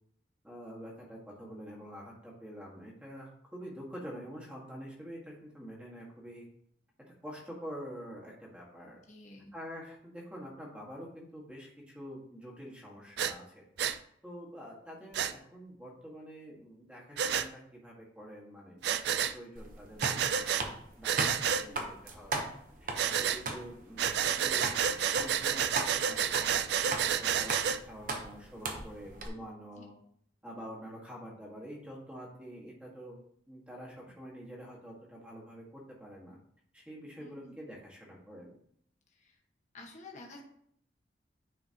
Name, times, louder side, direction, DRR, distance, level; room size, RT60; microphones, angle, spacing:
voice 1, 0.4-6.4 7.2-9.0 9.5-13.7 14.2-22.5 22.8-29.9 30.4-33.2 33.5-36.4 36.7-38.6, equal, 5° right, -4 dB, 1.7 m, -47 dB
voice 2, 9.1-9.5 21.5-21.8 29.8-29.9 37.2-37.5 39.1-39.4 39.7-40.4, left 2 dB, 40° left, 0 dB, 1.3 m, -51 dB
Breathing, 13.2-13.3 13.8-14.0 15.1-15.3 17.2-17.5 18.8-19.3 20.0-20.6 21.0-21.6 23.0-23.4 24.0-27.8, right 8 dB, 65° right, 0.4 m, -30 dB
sound 1, 19.6-29.3, right 3 dB, 50° right, 0.9 m, -39 dB
9.7 x 4.5 x 2.9 m, 0.68 s
head